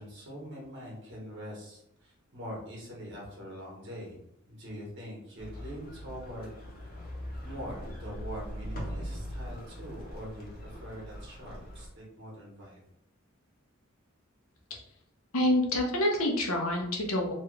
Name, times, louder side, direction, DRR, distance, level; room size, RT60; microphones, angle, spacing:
voice 1, 0.0-4.2 4.5-6.5 7.4-12.8, equal, 55° right, -4 dB, 1.3 m, -43 dB
sound 1, 5.4-11.9, equal, 45° left, 0.8 m, -41 dB
voice 2, 15.3-17.3, left 1 dB, 90° left, 1 dB, 0.8 m, -27 dB
3.1 x 2.4 x 3.1 m, 0.75 s
head